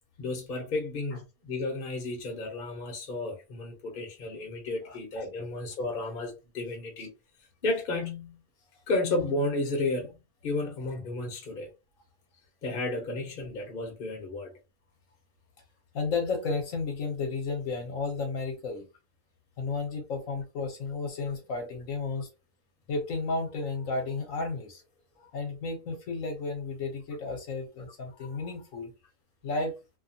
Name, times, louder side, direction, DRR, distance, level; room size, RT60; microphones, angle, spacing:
voice 1, 0.2-7.1 7.6-8.4 8.9-11.7 12.6-14.5, left 2 dB, 40° left, 0.9 m, -32 dB
voice 2, 15.9-18.9 19.6-22.3 22.9-24.8 25.2-28.9 29.4-29.8, left 3 dB, 65° left, 1.2 m, -33 dB
2.8 x 2.2 x 2.6 m
omnidirectional pair, 1.6 m